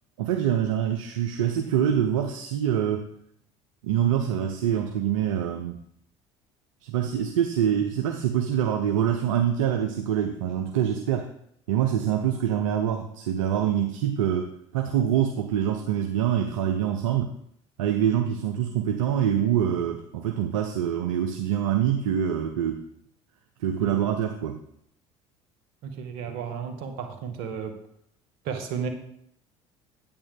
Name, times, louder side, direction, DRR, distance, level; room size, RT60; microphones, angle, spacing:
voice 1, 0.2-3.1 3.8-5.8 6.8-11.3 11.7-17.3 17.8-22.8 23.6-24.6, right 9 dB, 85° right, 6 dB, 0.7 m, -25 dB
voice 2, 25.8-27.7 28.4-28.9, right 6 dB, 70° right, 5 dB, 1.6 m, -33 dB
8.9 x 8.7 x 3.6 m, 0.71 s
hypercardioid pair, 65°, 17 cm